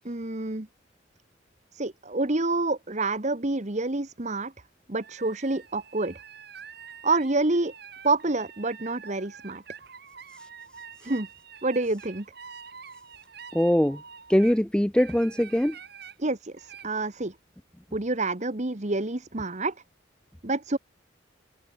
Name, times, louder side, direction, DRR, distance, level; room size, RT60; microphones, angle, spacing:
voice 1, 0.0-0.7 1.7-4.5 4.9-6.2 7.0-7.7 8.0-9.6 11.0-11.3 11.6-12.2 16.2-17.3 17.9-19.7 20.4-20.8, right 2 dB, 35° right, 1.5 m, -27 dB
sound 1, 5.0-14.6 15.0-16.2 16.6-16.8, right 7 dB, 55° right, 5.8 m, -46 dB
voice 2, 13.5-14.0 14.3-15.8, equal, 5° left, 0.5 m, -22 dB
open air
head